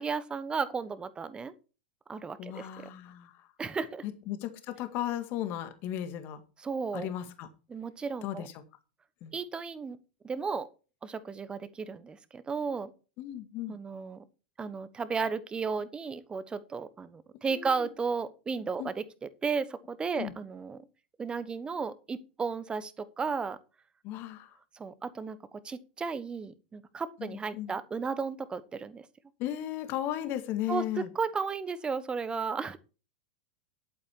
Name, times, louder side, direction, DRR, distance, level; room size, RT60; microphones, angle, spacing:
voice 1, 0.0-1.5 2.1-2.9 3.6-4.0 6.6-7.1 7.7-8.5 9.3-10.0 10.2-10.7 11.0-12.9 13.7-14.2 14.6-19.0 19.4-20.8 21.2-23.6 24.7-29.0 30.7-30.8 31.1-32.8, right 5 dB, 15° right, 1.1 m, -34 dB
voice 2, 2.4-3.4 4.0-6.4 6.9-7.5 8.2-8.5 9.2-9.3 13.2-13.8 17.5-17.9 18.8-18.9 20.2-20.3 24.0-24.5 27.2-27.7 29.4-31.1, left 12 dB, 40° left, 1.9 m, -35 dB
11.5 x 8.7 x 4.6 m
figure-of-eight pair, 90°, 5 cm